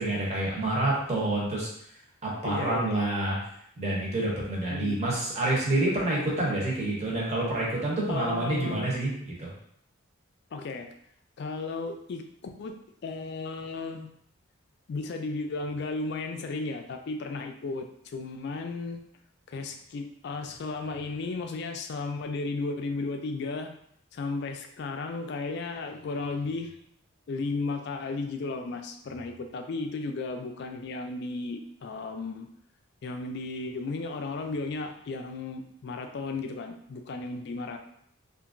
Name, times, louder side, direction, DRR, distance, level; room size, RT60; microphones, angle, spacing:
voice 1, 0.0-1.7 2.2-3.4 3.8-9.5, right 2 dB, 35° right, -4 dB, 0.8 m, -28 dB
voice 2, 2.4-3.1 4.7-5.0 8.1-9.0 10.5-10.9 11.4-12.2 12.6-14.1 14.9-17.9 18.1-19.0 19.5-23.7 24.1-26.7 27.3-32.5 33.0-37.8, left 3 dB, 55° left, 5 dB, 0.3 m, -34 dB
2.8 x 2.5 x 2.5 m, 0.69 s
head